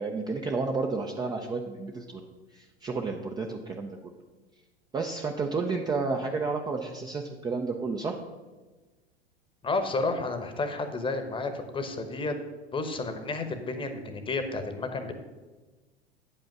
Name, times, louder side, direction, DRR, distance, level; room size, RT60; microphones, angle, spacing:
voice 1, 0.0-4.1 4.9-8.2, right 4 dB, 15° right, 2 dB, 0.5 m, -31 dB
voice 2, 9.6-12.3 12.7-15.1, left 3 dB, 15° left, 7 dB, 1.0 m, -31 dB
8.9 x 5.5 x 6.0 m, 1.2 s
figure-of-eight pair, 85°, 32 cm